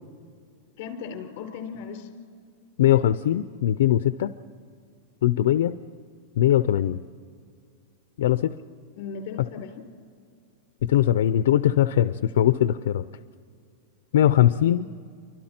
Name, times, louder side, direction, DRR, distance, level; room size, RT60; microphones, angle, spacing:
voice 1, 0.8-2.1 9.0-9.9, left 6 dB, 45° left, 4 dB, 3.8 m, -37 dB
voice 2, 2.8-4.3 5.2-5.7 6.4-7.0 8.2-8.5 10.8-13.0 14.1-14.9, left 12 dB, 70° left, 12 dB, 0.6 m, -20 dB
29.5 x 24.5 x 4.4 m, 2.3 s
supercardioid pair, 170°, 0 cm